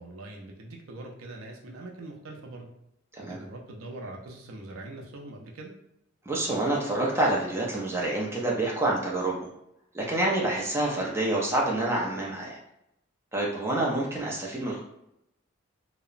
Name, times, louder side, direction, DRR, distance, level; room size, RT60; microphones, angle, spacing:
voice 1, 0.0-2.7 3.2-5.7, right 2 dB, 80° right, 1 dB, 0.5 m, -42 dB
voice 2, 6.3-9.5 9.9-12.6 13.3-14.8, right 2 dB, 10° right, -4 dB, 0.4 m, -27 dB
2.8 x 2.0 x 2.4 m, 0.81 s
head